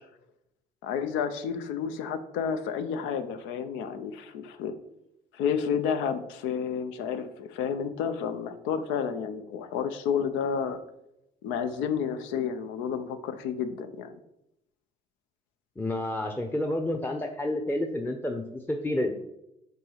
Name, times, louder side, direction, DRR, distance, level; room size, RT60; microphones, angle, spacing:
voice 1, 0.8-4.7 5.3-10.8 11.4-14.2, left 7 dB, 80° left, 10 dB, 0.6 m, -30 dB
voice 2, 15.8-19.1, left 1 dB, 10° left, 4 dB, 0.7 m, -30 dB
5.4 x 3.8 x 5.6 m, 0.84 s
supercardioid pair, 65°, 20 cm